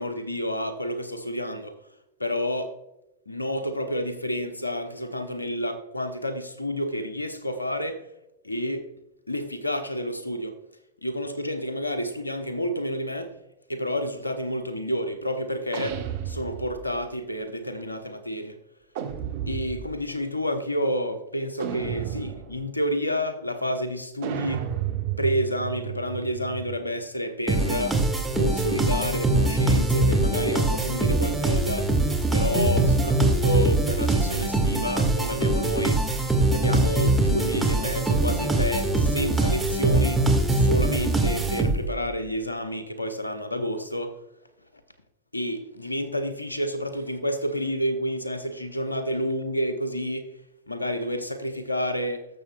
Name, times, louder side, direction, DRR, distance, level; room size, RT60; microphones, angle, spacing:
voice 1, 0.0-1.8 2.2-2.8 3.3-8.0 8.4-8.9 9.3-10.6 11.0-13.3 13.7-18.5 19.5-24.6 25.2-28.0 28.3-31.9 32.3-36.0 36.5-44.2 45.3-50.3 50.7-52.3, equal, 80° left, 0.9 m, -29 dB
sound 1, 15.7-17.0 18.9-20.0 21.6-22.7 24.2-26.9, right 10 dB, 55° right, 1.2 m, -32 dB
sound 2, 27.5-42.0, right 2 dB, 5° right, 1.9 m, -23 dB
19.0 x 7.0 x 2.3 m
figure-of-eight pair, 90°, 0 cm